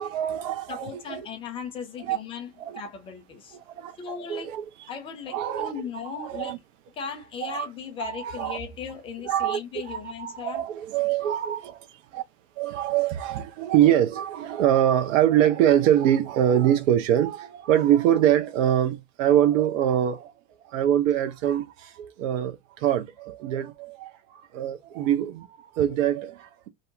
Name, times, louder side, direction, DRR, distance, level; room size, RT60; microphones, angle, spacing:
voice 1, 0.0-1.2 2.0-2.2 2.6-2.8 3.5-4.9 5.3-5.7 6.0-6.6 7.4-7.7 8.0-8.6 9.2-9.6 9.9-12.2 12.6-20.3 20.7-26.7, right 11 dB, 50° right, 0.7 m, -24 dB
voice 2, 0.7-3.6 4.0-4.5 4.9-6.5 6.9-10.6, left 6 dB, 15° left, 0.3 m, -37 dB
2.6 x 2.1 x 2.5 m
figure-of-eight pair, 85°, 49 cm